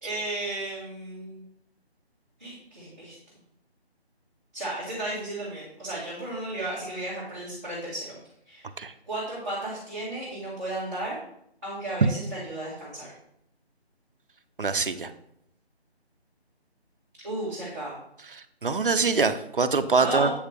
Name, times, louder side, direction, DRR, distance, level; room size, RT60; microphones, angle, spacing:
voice 1, 0.0-1.4 2.4-3.1 4.5-8.1 8.5-8.7 9.0-11.2 11.6-13.1 17.2-17.9 20.0-20.3, right 1 dB, 15° right, -13 dB, 1.6 m, -34 dB
voice 2, 14.6-15.1 18.6-20.3, right 4 dB, 55° right, 10 dB, 0.5 m, -24 dB
8.6 x 4.8 x 3.5 m, 0.75 s
figure-of-eight pair, 175°, 33 cm